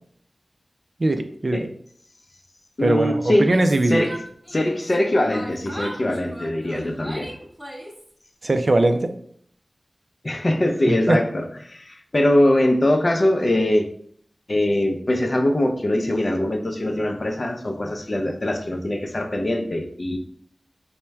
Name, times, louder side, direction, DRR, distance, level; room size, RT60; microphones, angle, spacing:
voice 1, 1.0-1.7 2.8-4.1 8.4-9.1 10.9-11.2, right 2 dB, 50° right, 7 dB, 0.4 m, -20 dB
voice 2, 2.8-3.5 3.9-4.2 4.5-7.3 10.2-13.9 14.5-20.2, left 1 dB, 45° left, 4 dB, 0.5 m, -22 dB
Yell, 3.3-5.0 5.3-8.1, equal, ahead, 0.7 m, -38 dB
4.3 x 2.1 x 3.4 m, 0.64 s
wide cardioid pair, 65°, 0 cm